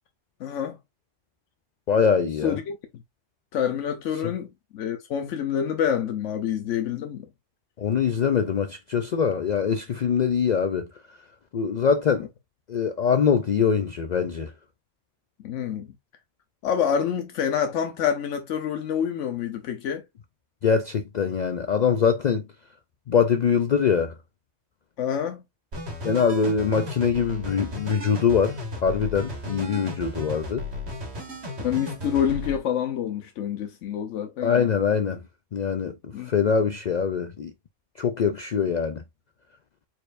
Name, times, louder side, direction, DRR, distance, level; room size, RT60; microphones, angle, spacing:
voice 1, 0.4-0.8 2.4-2.8 3.5-7.3 15.4-15.9 16.6-20.0 25.0-25.4 31.6-34.7 36.1-36.3, left 8 dB, 85° left, 1.0 m, -27 dB
voice 2, 1.9-2.6 4.2-4.3 7.8-10.9 11.5-12.2 12.7-14.5 20.6-22.4 23.1-24.1 26.0-30.6 34.4-35.2 35.5-35.9 36.3-37.5 38.0-39.0, left 6 dB, 65° left, 0.4 m, -23 dB
sound 1, 25.7-32.6, left 1 dB, 65° right, 1.9 m, -35 dB
4.4 x 4.4 x 2.5 m
omnidirectional pair, 1.2 m